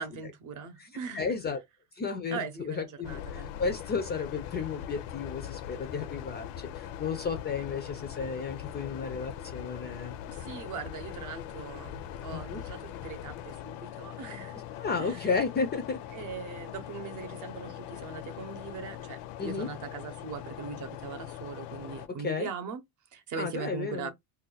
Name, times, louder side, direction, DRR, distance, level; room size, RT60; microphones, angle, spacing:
voice 1, 0.0-1.3 2.3-3.5 7.9-8.0 10.3-14.6 15.0-15.3 16.1-22.8 23.1-24.1, right 5 dB, 45° right, 0.8 m, -40 dB
voice 2, 1.1-1.6 2.0-2.4 2.7-10.4 12.3-12.6 14.7-16.0 19.4-19.7 22.2-22.5 23.4-24.1, left 5 dB, 25° left, 0.4 m, -33 dB
sound 1, 3.0-22.1, left 10 dB, 75° left, 0.6 m, -41 dB
2.5 x 2.2 x 3.9 m
cardioid pair, 155°, 43 cm